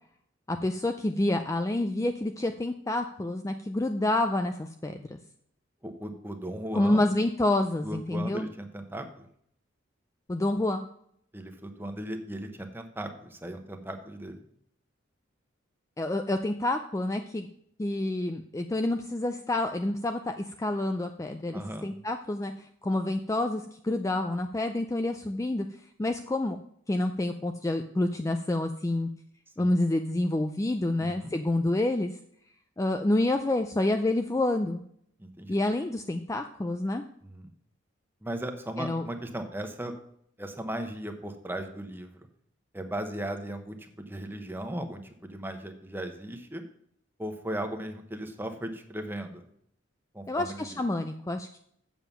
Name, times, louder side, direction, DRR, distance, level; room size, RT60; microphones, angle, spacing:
voice 1, 0.5-5.2 6.7-8.5 10.3-10.9 16.0-17.5 17.8-25.7 26.0-26.6 26.9-29.1 29.6-32.1 32.8-34.8 35.5-37.1 38.8-39.0 50.3-51.6, left 1 dB, 15° left, 6 dB, 0.4 m, -28 dB
voice 2, 5.8-7.0 7.8-9.3 11.3-14.4 21.5-21.9 29.6-29.7 31.0-31.3 35.2-35.5 37.2-37.5 38.2-39.9 40.4-42.3 42.7-46.6 47.2-49.4 50.1-50.8, right 1 dB, 10° right, 5 dB, 1.0 m, -37 dB
7.6 x 7.1 x 5.6 m, 0.69 s
head